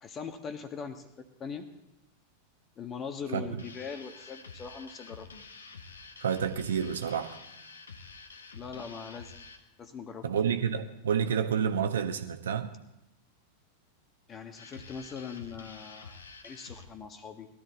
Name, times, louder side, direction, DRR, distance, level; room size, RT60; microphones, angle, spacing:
voice 1, 0.0-1.7 2.8-5.3 8.5-9.3 9.8-10.3 14.3-17.5, left 6 dB, 25° left, 7 dB, 1.6 m, -41 dB
voice 2, 3.3-3.6 6.2-7.4 10.2-12.7, right 7 dB, 65° right, 8 dB, 1.3 m, -29 dB
sound 1, 3.6-9.6 14.6-16.9, left 4 dB, 70° left, 1.4 m, -48 dB
20.5 x 13.5 x 4.1 m, 0.87 s
figure-of-eight pair, 90°, 0 cm